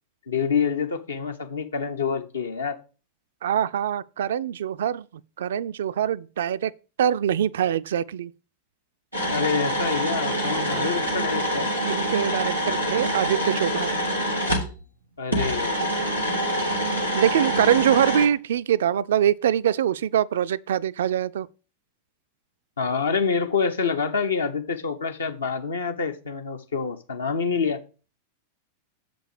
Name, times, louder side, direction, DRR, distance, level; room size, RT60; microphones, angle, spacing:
voice 1, 0.3-2.8 9.3-11.7 15.2-16.3 22.8-27.8, left 5 dB, 70° left, 0.9 m, -27 dB
voice 2, 3.4-5.1 5.4-6.7 7.0-8.3 10.7-11.1 11.8-13.9 17.1-21.5, right 10 dB, 60° right, 0.3 m, -24 dB
sound 1, 9.1-14.7 15.3-18.3, equal, 90° left, 1.9 m, -26 dB
7.3 x 5.2 x 4.9 m
figure-of-eight pair, 90°, 0 cm